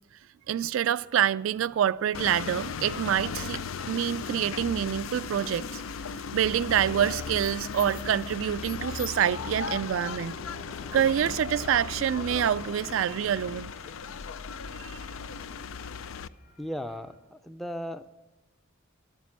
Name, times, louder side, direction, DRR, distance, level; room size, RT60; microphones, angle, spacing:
voice 1, 0.5-3.6 3.9-5.8 6.3-10.3 10.9-13.7 14.8-15.0, right 9 dB, 70° right, 0.3 m, -26 dB
sound 1, 1.3-17.2, left 1 dB, 45° left, 4.2 m, -52 dB
sound 2, 2.1-16.3, left 6 dB, 75° left, 0.4 m, -37 dB
voice 2, 16.6-18.2, equal, ahead, 0.5 m, -36 dB
12.0 x 9.4 x 7.4 m
head